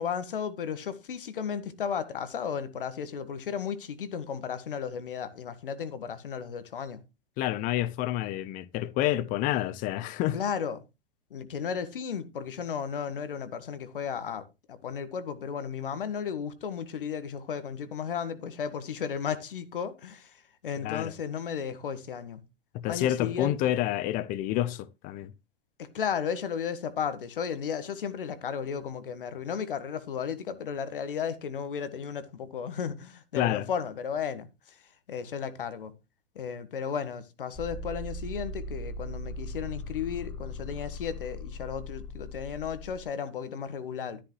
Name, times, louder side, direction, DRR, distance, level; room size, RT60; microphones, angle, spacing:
voice 1, 0.0-7.0 10.3-10.8 11.3-22.4 22.9-23.5 25.8-34.8 35.1-35.9 36.3-44.2, left 7 dB, 60° left, 1.6 m, -34 dB
voice 2, 7.4-10.4 20.8-21.1 22.7-25.3 33.3-33.7, left 13 dB, 30° left, 0.8 m, -28 dB
sound 1, 37.5-43.0, left 1 dB, 5° left, 1.5 m, -39 dB
13.0 x 10.0 x 3.1 m
figure-of-eight pair, 100°, 30 cm